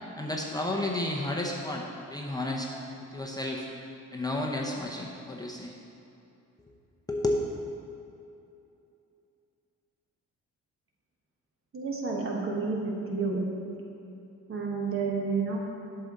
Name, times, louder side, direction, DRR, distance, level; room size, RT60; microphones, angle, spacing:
voice 1, 0.2-2.8 3.1-3.6 4.1-5.7 7.1-7.5, left 1 dB, 15° left, -1 dB, 0.7 m, -31 dB
voice 2, 11.7-13.5 14.5-15.6, right 4 dB, 45° right, -1 dB, 1.5 m, -30 dB
8.0 x 6.6 x 4.0 m, 2.8 s
cardioid pair, 90°, 30 cm